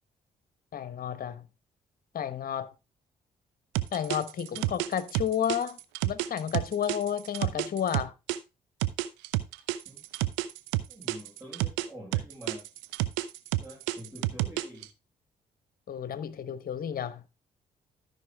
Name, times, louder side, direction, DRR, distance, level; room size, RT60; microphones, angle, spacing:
voice 1, 0.7-1.5 2.1-2.7 3.9-5.8 6.0-8.1 15.9-17.2, left 9 dB, 55° left, 1.1 m, -31 dB
sound 1, 3.7-8.4 8.8-11.9 12.1-14.8, right 17 dB, 80° right, 0.6 m, -29 dB
voice 2, 10.9-12.7 13.6-14.9, equal, 5° right, 6.7 m, -46 dB
13.0 x 5.6 x 3.5 m
hypercardioid pair, 45°, 18 cm